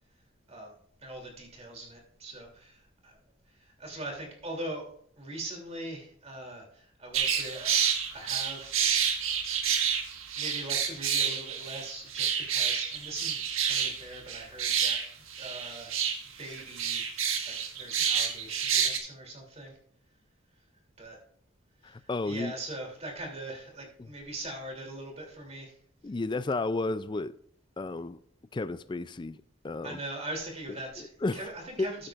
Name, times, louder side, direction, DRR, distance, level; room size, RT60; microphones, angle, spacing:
voice 1, 1.0-3.2 3.6-4.8 5.2-7.8 8.1-8.8 9.2-9.3 9.6-9.8 10.4-15.0 15.4-15.9 16.4-17.0 17.5-19.7 21.0-21.2 21.8-25.7 29.8-32.1, right 1 dB, 30° right, 2.9 m, -41 dB
sound 1, 7.1-19.0, right 7 dB, 85° right, 1.6 m, -29 dB
voice 2, 21.8-22.5 26.0-27.3 27.8-28.2 28.5-29.4 29.6-30.0 31.0-31.4 31.8-31.9, left 2 dB, 20° left, 0.3 m, -32 dB
13.5 x 9.2 x 2.5 m
head